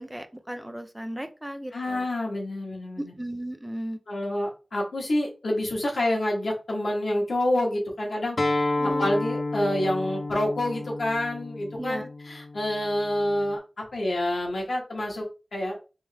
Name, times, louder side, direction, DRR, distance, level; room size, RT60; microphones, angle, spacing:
voice 1, 0.0-2.1 3.0-4.0 8.7-9.2 11.7-12.1, right 1 dB, 10° right, 8 dB, 0.5 m, -36 dB
voice 2, 1.7-3.1 4.1-8.4 9.0-15.8, left 1 dB, 85° left, -1 dB, 1.3 m, -28 dB
Acoustic guitar, 8.4-13.6, left 2 dB, 50° left, 0.6 m, -31 dB
3.5 x 3.2 x 3.2 m, 0.32 s
wide cardioid pair, 80°, 0 cm